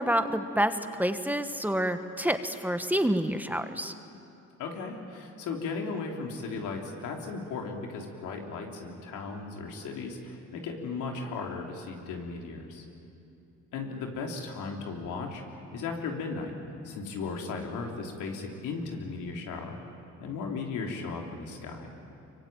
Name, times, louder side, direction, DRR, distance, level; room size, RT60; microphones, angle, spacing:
voice 1, 0.0-3.9, equal, 5° right, 8 dB, 1.3 m, -28 dB
voice 2, 4.6-12.8 13.7-15.4 15.7-16.5 16.8-19.8 20.2-21.9, left 4 dB, 90° left, 1 dB, 3.5 m, -36 dB
24.5 x 23.5 x 9.1 m, 2.7 s
cardioid pair, 90°, 30 cm